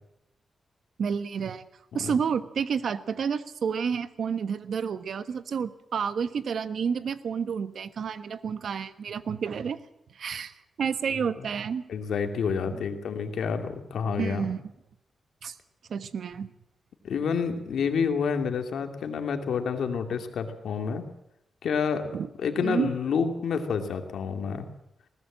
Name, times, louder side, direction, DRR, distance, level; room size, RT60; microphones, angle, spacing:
voice 1, 1.0-1.6 1.9-9.8 10.1-11.8 12.7-12.8 14.2-14.6 15.4-15.6 15.9-16.5 22.1-22.3 22.6-22.9, right 6 dB, 75° right, 12 dB, 1.2 m, -30 dB
voice 2, 11.1-11.5 11.9-14.5 17.0-21.1 21.6-22.0 22.4-24.7, left 6 dB, 90° left, 5 dB, 2.6 m, -29 dB
21.0 x 18.5 x 7.6 m, 0.82 s
cardioid pair, 90°, 0 cm